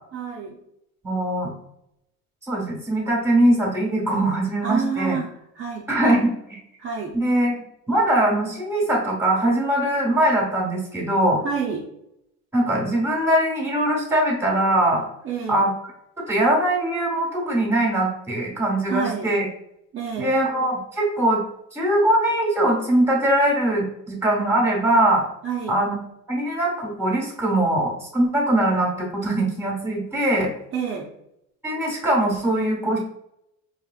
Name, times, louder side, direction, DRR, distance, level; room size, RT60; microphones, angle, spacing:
voice 1, 0.1-0.6 4.6-6.3 6.8-7.2 11.4-11.9 15.2-15.7 18.9-19.4 19.9-20.4 25.4-25.9 30.7-31.1, right 6 dB, 40° right, -2 dB, 0.6 m, -29 dB
voice 2, 1.0-1.5 2.5-5.2 5.9-6.3 7.1-7.5 7.9-11.4 12.5-15.0 15.5-15.7 16.3-19.5 20.2-21.4 21.7-25.2 25.7-26.0 26.3-30.5 31.6-33.0, right 1 dB, 10° right, -2 dB, 1.3 m, -21 dB
4.7 x 3.0 x 2.3 m, 0.81 s
cardioid pair, 130°, 34 cm